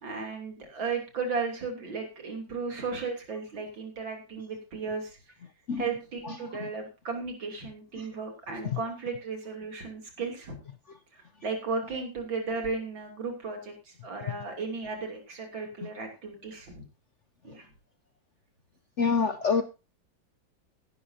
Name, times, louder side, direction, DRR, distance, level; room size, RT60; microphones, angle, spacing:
voice 1, 0.0-5.2 5.8-10.6 11.1-16.9 17.4-17.7, right 4 dB, 80° right, 3 dB, 3.7 m, -35 dB
voice 2, 19.0-19.6, left 5 dB, 60° left, 9 dB, 0.8 m, -25 dB
16.0 x 11.5 x 2.8 m, 0.30 s
omnidirectional pair, 2.1 m